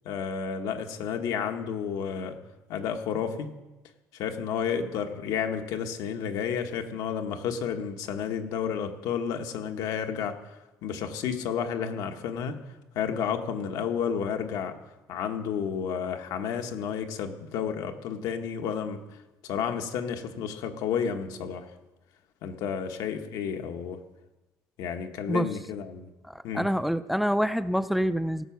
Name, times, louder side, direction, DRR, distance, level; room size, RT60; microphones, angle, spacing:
voice 1, 0.0-2.4 2.7-3.5 4.1-10.4 10.8-12.6 12.9-14.8 15.1-19.0 19.4-21.7 22.4-24.0 24.8-26.1 26.4-26.7, left 7 dB, 80° left, 6 dB, 1.2 m, -31 dB
voice 2, 26.5-28.5, equal, ahead, 12 dB, 0.4 m, -26 dB
16.5 x 7.0 x 5.9 m, 1.1 s
cardioid pair, 100°, 6 cm